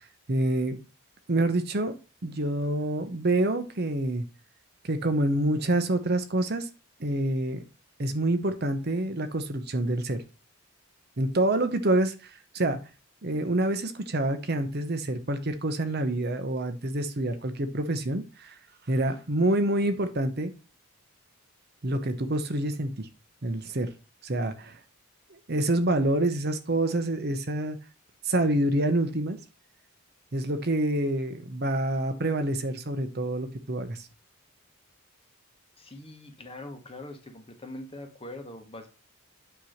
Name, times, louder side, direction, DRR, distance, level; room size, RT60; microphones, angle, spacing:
voice 1, 0.3-0.8 1.3-1.9 2.2-4.2 4.8-6.7 7.0-7.6 8.0-10.2 11.2-12.8 13.2-18.5 18.9-20.5 21.8-23.1 23.4-23.9 24.2-24.8 25.5-27.8 28.2-29.4 30.3-34.1, right 1 dB, 45° right, 9 dB, 0.8 m, -27 dB
voice 2, 35.8-38.9, left 1 dB, 25° left, 5 dB, 1.1 m, -42 dB
8.9 x 3.0 x 6.3 m, 0.34 s
head